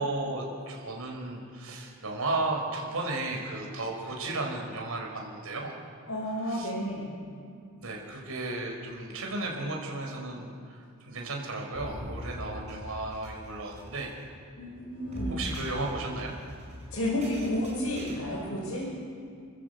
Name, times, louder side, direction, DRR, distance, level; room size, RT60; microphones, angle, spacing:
voice 1, 0.0-5.7 6.4-6.7 7.8-10.8 11.1-14.1 15.3-16.3, right 2 dB, 85° right, 0 dB, 5.1 m, -34 dB
voice 2, 6.1-7.1 14.6-15.4 16.9-18.9, left 1 dB, 75° left, -5 dB, 5.6 m, -31 dB
sound 1, 11.7-18.2, equal, 30° right, 5.7 m, -42 dB
28.0 x 14.5 x 8.1 m, 2.3 s
head